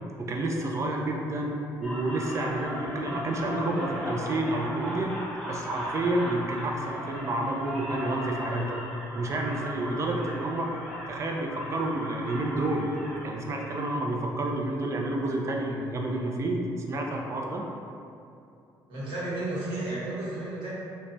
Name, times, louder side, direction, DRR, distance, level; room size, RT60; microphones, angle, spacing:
voice 1, 0.2-5.1 5.5-8.8 9.1-10.7 11.1-12.9 13.2-16.6 16.9-17.6, right 2 dB, 35° right, 1 dB, 0.4 m, -29 dB
sound 1, 1.8-13.8, left 1 dB, 5° left, 0.8 m, -37 dB
voice 2, 18.9-20.7, right 2 dB, 70° right, -8 dB, 1.1 m, -32 dB
3.0 x 2.1 x 2.6 m, 2.6 s
cardioid pair, 95°, 9 cm